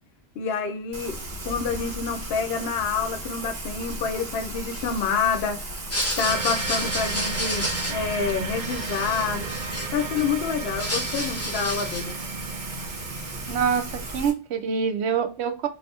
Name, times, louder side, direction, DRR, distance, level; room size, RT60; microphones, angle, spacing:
voice 1, 0.4-5.7 6.2-9.4 9.9-12.2, left 6 dB, 70° left, 0.8 m, -28 dB
Rain, 0.9-14.3, right 2 dB, 70° right, 1.2 m, -36 dB
sound 1, 5.8-10.2 10.6-12.2, equal, 15° left, 0.7 m, -30 dB
sound 2, 6.2-14.2, right 4 dB, 50° right, 0.6 m, -35 dB
voice 2, 13.5-15.7, right 6 dB, 90° right, 0.9 m, -25 dB
2.8 x 2.6 x 3.2 m
omnidirectional pair, 1.1 m